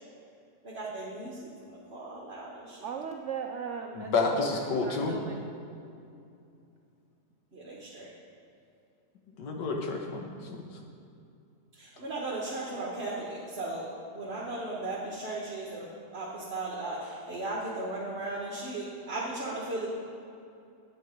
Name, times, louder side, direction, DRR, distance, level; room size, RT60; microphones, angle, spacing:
voice 1, 0.6-2.8 7.5-8.1 11.7-19.9, right 2 dB, 40° right, -5 dB, 1.4 m, -36 dB
voice 2, 2.8-4.1 4.5-5.5, right 6 dB, 85° right, 3 dB, 0.6 m, -38 dB
voice 3, 3.9-5.2 9.4-10.6, left 3 dB, 80° left, 2 dB, 1.7 m, -30 dB
9.5 x 8.6 x 5.1 m, 2.6 s
omnidirectional pair, 1.9 m